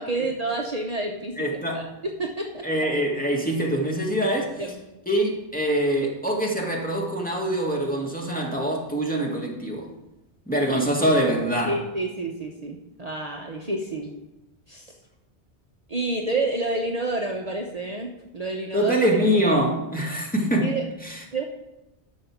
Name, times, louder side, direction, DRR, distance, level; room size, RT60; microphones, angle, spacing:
voice 1, 0.0-1.4 1.7-2.6 4.6-4.8 11.7-14.1 14.7-14.9 15.9-18.9 19.4-19.5 20.6-20.8 21.3-21.4, right 2 dB, 40° right, 1 dB, 1.0 m, -29 dB
voice 2, 1.4-1.9 2.6-4.6 5.1-9.9 10.5-11.8 18.7-20.8 21.0-21.2, right 1 dB, 10° left, -2 dB, 1.8 m, -24 dB
12.0 x 6.4 x 5.9 m, 0.96 s
omnidirectional pair, 1.1 m